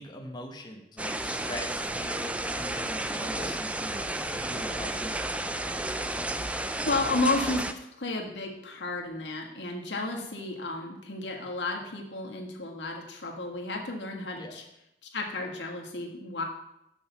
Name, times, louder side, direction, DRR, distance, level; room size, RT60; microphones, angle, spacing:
voice 1, 0.0-5.4 14.4-14.6, left 1 dB, 25° left, 1 dB, 1.0 m, -42 dB
sound 1, 1.0-7.7, right 1 dB, 10° right, 0.4 m, -32 dB
voice 2, 6.8-7.6 8.0-14.6 15.1-16.4, left 2 dB, 90° left, 0 dB, 1.6 m, -32 dB
6.5 x 5.7 x 6.8 m, 0.83 s
head